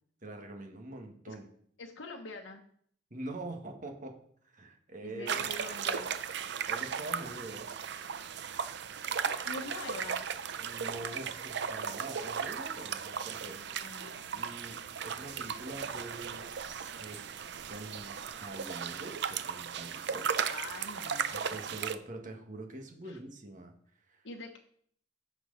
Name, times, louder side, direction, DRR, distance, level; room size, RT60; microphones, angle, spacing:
voice 1, 0.2-1.4 3.1-4.1 4.5-5.5 6.7-7.8 10.6-13.9 14.3-17.2 17.7-18.1 18.4-20.5 21.3-23.7 24.1-24.2, right 2 dB, 45° right, 3 dB, 1.7 m, -44 dB
voice 2, 1.8-2.6 5.0-6.1 9.4-10.3 13.5-14.4 20.4-21.8 23.0-23.2 24.2-24.6, left 2 dB, 85° left, 1 dB, 1.1 m, -45 dB
sound 1, 5.3-22.0, right 7 dB, 65° right, 0.6 m, -36 dB
15.5 x 6.2 x 4.0 m, 0.63 s
head